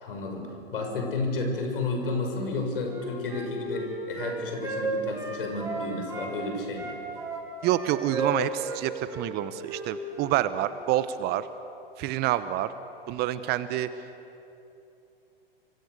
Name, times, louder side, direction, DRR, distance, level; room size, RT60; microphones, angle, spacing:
voice 1, 0.0-7.0, left 3 dB, 70° left, 3 dB, 6.5 m, -31 dB
Wind instrument woodwind instrument, 2.8-6.3 6.7-8.8 9.1-9.3 9.6-9.8 10.1-10.3, right 3 dB, 10° right, 7.6 m, -34 dB
voice 2, 7.6-11.5 12.0-12.7 13.1-13.9, right 13 dB, 35° right, 13 dB, 1.0 m, -27 dB
29.5 x 26.0 x 6.7 m, 2.9 s
figure-of-eight pair, 105°, 29 cm